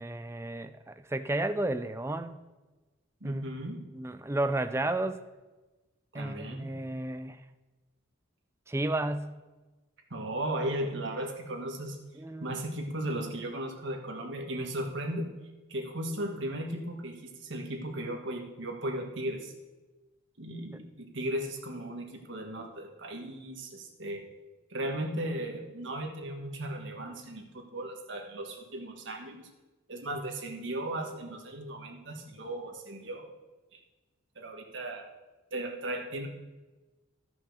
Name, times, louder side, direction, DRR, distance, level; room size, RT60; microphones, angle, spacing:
voice 1, 0.0-2.3 3.2-3.4 3.9-5.2 6.1-7.4 8.7-9.4 12.1-12.5, right 2 dB, 15° right, 10 dB, 0.3 m, -32 dB
voice 2, 3.2-3.8 6.1-6.8 10.1-12.0 12.4-15.3 15.7-19.5 20.4-24.3 24.7-29.5 29.9-33.3 33.7-33.8 34.3-35.0 35.5-36.3, right 1 dB, 65° right, 2 dB, 1.5 m, -36 dB
12.5 x 6.0 x 6.4 m, 1.2 s
head